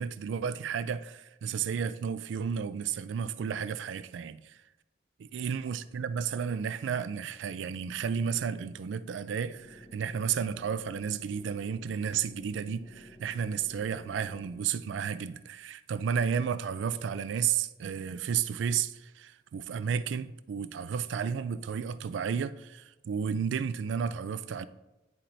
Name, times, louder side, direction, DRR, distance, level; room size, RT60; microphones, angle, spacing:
voice 1, 0.0-4.6 5.3-24.7, right 7 dB, 85° right, 0.3 m, -32 dB
sound 1, 9.5-14.6, equal, 35° left, 0.8 m, -53 dB
10.0 x 4.3 x 2.6 m
head